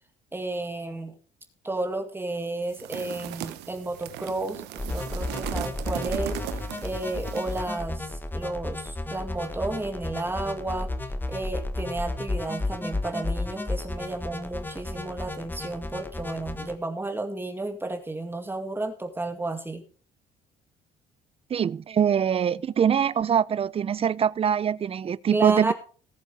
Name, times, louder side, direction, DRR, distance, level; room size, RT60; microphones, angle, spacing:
voice 1, 0.3-1.1 1.6-10.9 11.3-19.8 25.3-25.7, right 2 dB, 15° right, 2.2 m, -32 dB
sound 1, 2.7-7.8, right 14 dB, 85° right, 1.1 m, -37 dB
sound 2, 4.8-16.8, left 2 dB, 10° left, 1.3 m, -33 dB
voice 2, 21.5-25.7, right 8 dB, 35° right, 0.5 m, -23 dB
19.0 x 7.4 x 3.4 m
cardioid pair, 110°, 17 cm